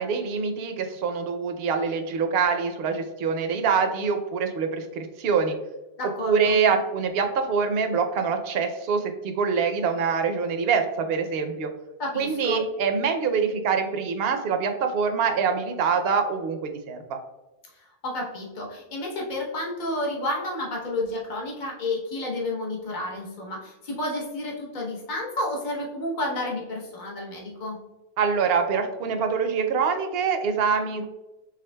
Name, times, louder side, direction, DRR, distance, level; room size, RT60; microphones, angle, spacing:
voice 1, 0.0-5.6 6.2-11.7 12.2-17.2 28.2-31.1, right 5 dB, 75° right, 6 dB, 0.8 m, -25 dB
voice 2, 6.0-6.6 12.0-12.7 17.7-27.8, left 1 dB, 50° left, -2 dB, 1.1 m, -31 dB
5.0 x 3.5 x 2.2 m, 1.0 s
omnidirectional pair, 1.0 m